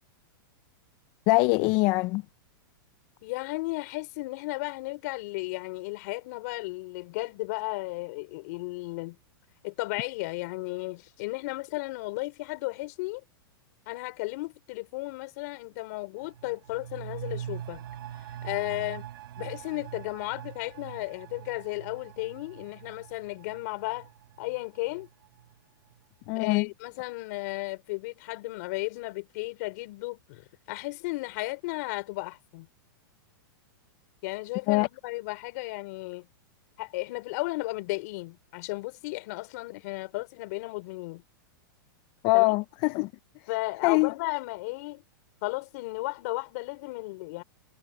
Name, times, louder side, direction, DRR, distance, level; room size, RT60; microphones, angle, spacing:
voice 1, 1.3-2.2 26.3-26.7 34.7-34.9 42.2-43.1 43.8-44.1, left 25 dB, 35° left, 0.5 m, -23 dB
voice 2, 3.2-9.2 9.6-13.2 13.9-17.8 18.4-19.1 19.4-24.1 24.4-25.1 26.3-32.7 34.2-36.3 36.8-41.2 42.3-42.5 43.5-45.0 45.4-47.4, left 23 dB, 50° left, 4.9 m, -34 dB
sound 1, 16.2-25.6 25.9-26.0, right 10 dB, 70° right, 2.3 m, -43 dB
supercardioid pair, 155°, 12 cm